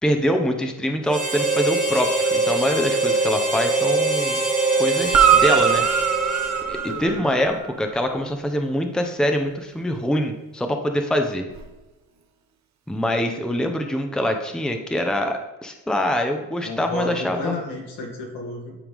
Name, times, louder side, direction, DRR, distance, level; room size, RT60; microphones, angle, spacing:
voice 1, 0.0-4.4 4.8-5.8 6.7-11.4 12.9-17.5, equal, ahead, 5 dB, 0.9 m, -24 dB
Harmonica, 1.1-7.0, right 3 dB, 20° right, 1.7 m, -23 dB
Guitar, 5.1-7.7 11.5-11.6, right 8 dB, 45° right, 1.1 m, -20 dB
voice 2, 6.8-7.2 16.6-18.8, left 1 dB, 75° left, -1 dB, 2.8 m, -31 dB
10.5 x 4.7 x 3.6 m, 1.1 s
supercardioid pair, 75°, 39 cm